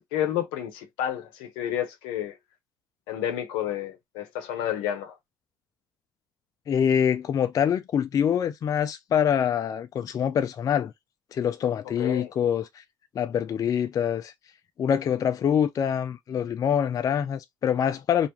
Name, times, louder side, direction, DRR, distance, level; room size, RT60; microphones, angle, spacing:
voice 1, 0.0-2.4 3.1-5.2 12.0-12.3, left 11 dB, 85° left, 0.7 m, -30 dB
voice 2, 6.7-10.9 11.3-12.8 13.2-14.3 14.8-18.3, left 8 dB, 45° left, 0.4 m, -25 dB
2.5 x 2.2 x 2.9 m
supercardioid pair, 70°, 8 cm